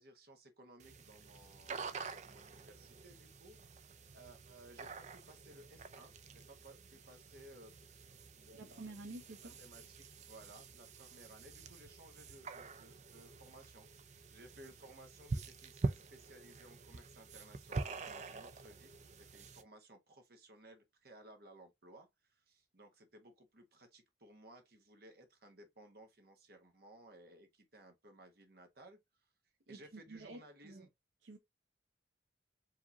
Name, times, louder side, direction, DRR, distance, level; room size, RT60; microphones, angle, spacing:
voice 1, 0.0-3.8 4.1-7.7 8.3-8.9 9.4-29.0 29.7-30.9, right 1 dB, 55° right, 1.2 m, -59 dB
sound 1, 0.8-19.6, right 3 dB, 40° right, 0.4 m, -46 dB
voice 2, 8.5-9.5 29.7-30.9 31.2-31.4, right 2 dB, 85° right, 0.7 m, -50 dB
4.9 x 2.9 x 2.7 m
head